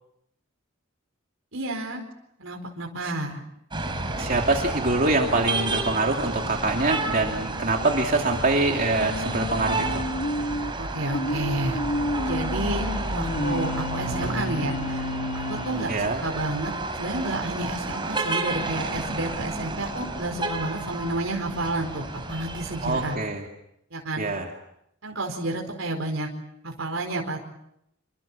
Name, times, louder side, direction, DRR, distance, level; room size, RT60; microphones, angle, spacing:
voice 1, 1.5-2.0 2.4-3.4 10.8-11.8 12.2-12.8 13.1-15.0 15.5-16.7 17.0-23.2 23.9-24.3 25.0-26.3 26.6-27.4, right 2 dB, 70° right, 1 dB, 4.8 m, -30 dB
sound 1, 3.7-23.2, right 2 dB, 25° right, 4.9 m, -31 dB
voice 2, 4.2-10.0 15.9-16.2 22.8-23.5 24.2-24.5, right 2 dB, 45° right, 2 dB, 2.7 m, -24 dB
sound 2, 9.0-16.5, left 1 dB, 65° left, 2.9 m, -31 dB
27.5 x 25.5 x 7.4 m, 0.79 s
head